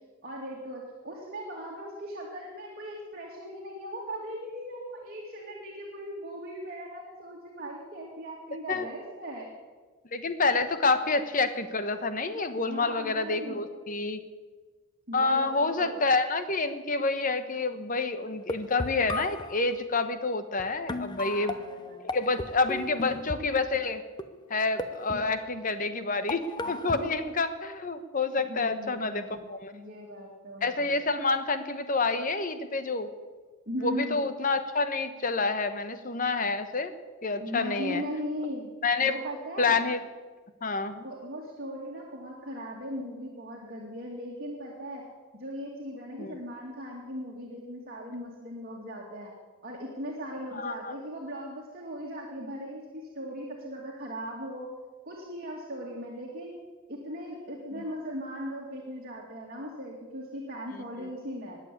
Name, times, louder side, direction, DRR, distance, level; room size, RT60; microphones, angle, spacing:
voice 1, 0.2-9.5 12.6-13.7 15.1-16.0 21.1-22.3 26.6-27.0 28.5-29.4 29.7-31.0 33.7-34.2 37.4-38.7 39.0-39.8 40.9-45.0 45.3-49.3 49.6-54.7 55.0-56.6 56.9-61.6, equal, 45° right, -2 dB, 2.4 m, -38 dB
voice 2, 10.1-14.2 15.1-21.6 22.0-24.0 24.5-26.4 26.7-29.7 30.6-33.1 33.8-36.9 37.2-38.0 38.8-39.1 39.6-40.0 40.6-41.0 46.2-46.4 50.5-50.9, left 3 dB, 40° left, 10 dB, 1.1 m, -28 dB
sound 1, 18.3-19.6 20.6-20.7 20.9-23.6 24.2-24.5 24.8-25.8 26.3-27.4, left 2 dB, 20° left, 0.7 m, -36 dB
20.5 x 7.6 x 8.4 m, 1.4 s
head